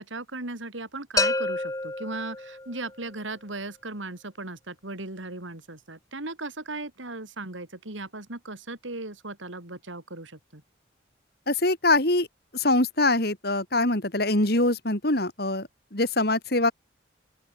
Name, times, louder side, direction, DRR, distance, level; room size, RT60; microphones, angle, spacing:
voice 1, 0.0-10.6, right 2 dB, 85° right, 3.7 m, -37 dB
sound 1, 1.2-3.0, left 3 dB, 20° left, 1.7 m, -28 dB
voice 2, 11.5-12.3 12.5-16.7, left 2 dB, 55° left, 3.7 m, -24 dB
open air
head